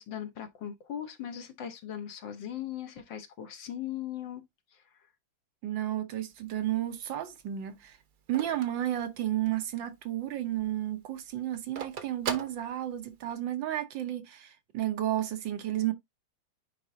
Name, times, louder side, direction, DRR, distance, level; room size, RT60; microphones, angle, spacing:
voice 1, 0.0-4.4 4.7-4.8, left 10 dB, 70° left, 1.9 m, -39 dB
voice 2, 5.6-8.0 8.3-15.9, right 12 dB, 75° right, 1.6 m, -32 dB
Telephone, 6.3-9.7 10.1-10.2 10.5-13.3, right 6 dB, 55° right, 1.3 m, -40 dB
9.9 x 3.9 x 2.7 m
omnidirectional pair, 2.1 m